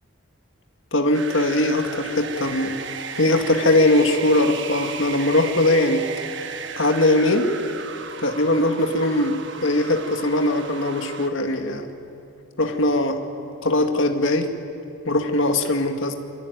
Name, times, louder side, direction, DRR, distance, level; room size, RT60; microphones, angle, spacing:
voice 1, 0.9-2.8 3.1-6.0 6.4-6.5 6.8-7.5 8.2-11.9 12.6-13.2 13.6-14.5 15.1-16.1, left 1 dB, 65° left, 5 dB, 2.0 m, -20 dB
sound 1, 1.1-11.3, right 6 dB, 55° right, 1.5 m, -35 dB
27.0 x 23.0 x 9.4 m, 2.7 s
head